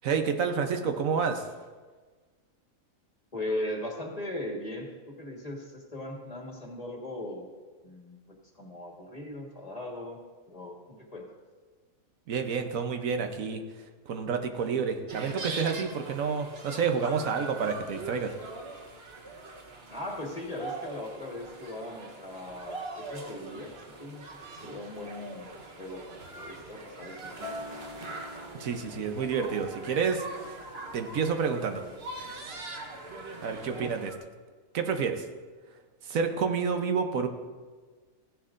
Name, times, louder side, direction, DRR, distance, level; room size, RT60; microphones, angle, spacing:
voice 1, 0.0-1.5 12.3-13.6 14.1-18.3 28.6-30.6 30.9-31.8 32.2-32.4 33.4-34.1 34.7-35.2 36.0-37.3, right 6 dB, 80° right, 6 dB, 1.2 m, -29 dB
voice 2, 3.3-7.5 7.8-10.2 10.5-11.4 19.9-25.5 25.8-27.7 33.6-33.9, left 1 dB, 30° left, -1 dB, 1.5 m, -39 dB
sound 1, 15.1-34.2, right 3 dB, 50° right, 1.2 m, -42 dB
Acoustic guitar, 27.4-31.8 32.2-32.6, left 1 dB, 20° right, 2.3 m, -46 dB
15.5 x 10.5 x 2.5 m, 1.4 s
omnidirectional pair, 1.4 m